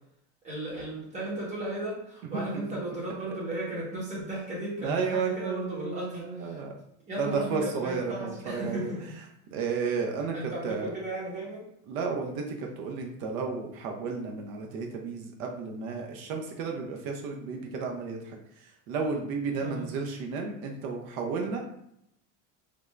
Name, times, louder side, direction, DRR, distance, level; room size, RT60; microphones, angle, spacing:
voice 1, 0.4-6.6 7.0-9.0 10.3-11.6 19.6-19.9, right 1 dB, 15° right, -6 dB, 1.1 m, -35 dB
voice 2, 4.8-6.7 7.2-8.9 9.5-10.3 10.6-10.9 11.9-21.6, right 5 dB, 75° right, 2 dB, 0.7 m, -32 dB
3.4 x 2.4 x 3.2 m, 0.77 s
cardioid pair, 180°, 41 cm